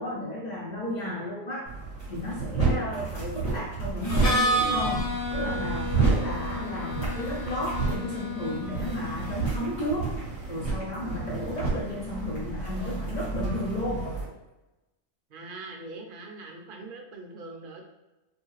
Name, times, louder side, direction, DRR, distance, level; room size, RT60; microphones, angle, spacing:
voice 1, 0.0-1.7 2.1-10.1 10.5-14.1, left 1 dB, 85° left, -3 dB, 0.3 m, -33 dB
sound 1, 1.6-14.2, right 4 dB, 70° left, 2.1 m, -30 dB
voice 2, 2.4-2.7 11.2-11.5 15.3-17.8, right 2 dB, 55° right, 1 dB, 0.6 m, -42 dB
Harmonica, 4.0-9.8, left 1 dB, 35° left, 0.6 m, -31 dB
3.0 x 2.7 x 3.0 m, 1.0 s
omnidirectional pair, 1.4 m